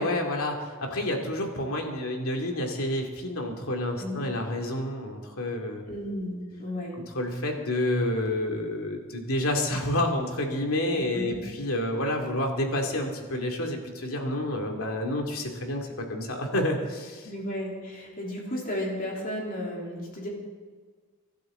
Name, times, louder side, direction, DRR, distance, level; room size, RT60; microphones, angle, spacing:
voice 1, 0.0-5.8 7.1-17.3, left 1 dB, 70° left, 2 dB, 2.6 m, -29 dB
voice 2, 5.9-6.9 10.9-11.2 17.2-20.3, left 1 dB, 40° left, -3 dB, 3.6 m, -34 dB
24.5 x 12.0 x 3.9 m, 1.5 s
head